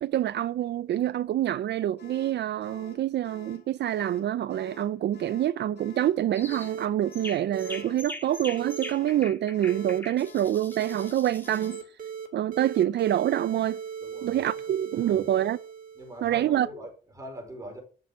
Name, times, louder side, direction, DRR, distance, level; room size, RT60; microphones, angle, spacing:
voice 1, 0.0-11.8 12.3-13.8 14.2-15.6 16.2-16.7, right 12 dB, 70° right, 0.4 m, -26 dB
sound 1, 2.0-11.9, left 4 dB, 65° left, 2.6 m, -49 dB
sound 2, 6.3-6.7 7.1-11.8, left 1 dB, 10° left, 1.9 m, -42 dB
sound 3, 6.5-6.9 7.5-7.8 8.6-8.9 9.7-10.0 10.7-11.1 11.5-12.3 12.5-16.3, right 7 dB, 50° right, 2.6 m, -38 dB
voice 2, 14.0-14.4 14.9-15.3 15.9-17.8, right 1 dB, 15° right, 4.7 m, -42 dB
12.0 x 6.2 x 8.1 m
wide cardioid pair, 150°, 18 cm